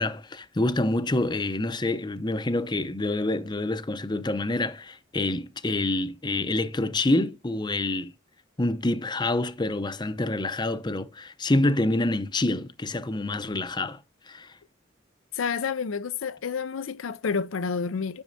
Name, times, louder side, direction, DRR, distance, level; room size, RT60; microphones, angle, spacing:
voice 1, 0.0-8.1 8.6-14.0 14.3-14.5, left 2 dB, 20° left, 0.6 m, -27 dB
voice 2, 15.3-18.2, left 5 dB, 85° left, 0.5 m, -29 dB
10.5 x 6.2 x 2.7 m
head